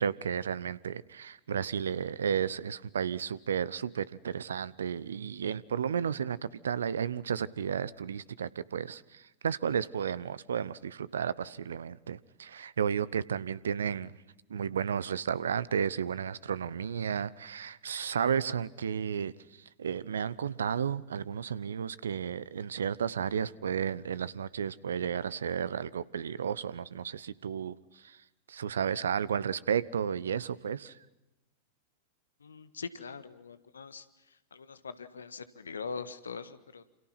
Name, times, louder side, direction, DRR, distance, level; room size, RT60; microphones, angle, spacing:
voice 1, 0.0-14.1 14.5-19.3 19.8-27.8 28.0-28.2 28.5-31.0, right 7 dB, 65° right, 21 dB, 0.9 m, -33 dB
voice 2, 32.4-34.0 34.5-36.8, left 5 dB, 70° left, 13 dB, 1.5 m, -42 dB
29.0 x 28.0 x 5.9 m, 1.0 s
figure-of-eight pair, 90°, 0 cm